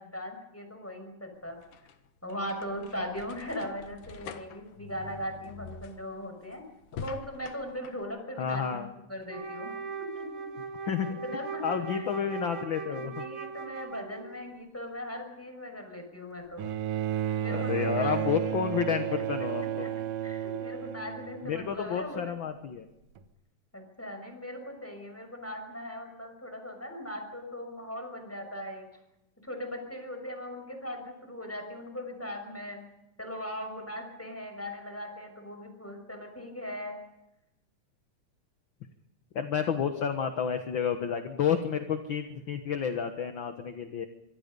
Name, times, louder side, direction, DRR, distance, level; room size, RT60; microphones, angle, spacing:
voice 1, 0.0-1.6 2.2-6.6 6.9-8.8 9.1-9.7 10.0-10.5 10.8-12.1 12.9-16.6 17.4-18.2 18.4-18.6 18.9-19.2 19.8-19.9 20.2-22.3 23.7-28.9 29.4-32.8 33.2-37.0, left 1 dB, 5° left, 4 dB, 5.9 m, -39 dB
sound 1, 1.3-8.0, left 5 dB, 80° left, 3.0 m, -46 dB
voice 2, 8.4-8.9 10.9-11.2 11.6-13.2 17.5-19.9 21.4-22.9 39.3-44.1, left 7 dB, 55° left, 7 dB, 1.5 m, -30 dB
Wind instrument woodwind instrument, 9.3-14.5, right 4 dB, 45° right, 2.8 m, -39 dB
Bowed string instrument, 16.6-22.0 23.2-23.3, right 11 dB, 85° right, 3.0 m, -32 dB
25.0 x 24.0 x 5.4 m, 0.91 s
omnidirectional pair, 3.6 m